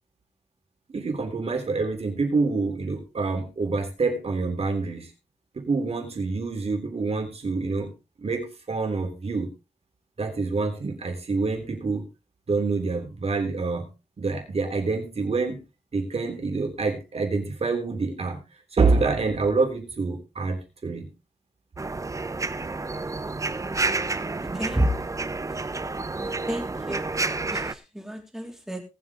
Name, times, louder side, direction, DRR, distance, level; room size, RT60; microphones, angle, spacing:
voice 1, 0.9-5.1 5.5-9.5 10.2-12.1 12.5-13.9 14.2-15.6 15.9-18.4 18.7-21.1, right 4 dB, 55° right, 4 dB, 3.4 m, -27 dB
sound 1, 21.8-27.7, right 3 dB, 25° right, 0.7 m, -30 dB
voice 2, 24.5-24.9 26.2-27.2 27.5-28.8, right 1 dB, 5° right, 2 dB, 3.3 m, -30 dB
18.5 x 7.8 x 3.7 m, 0.28 s
wide cardioid pair, 115°, 12 cm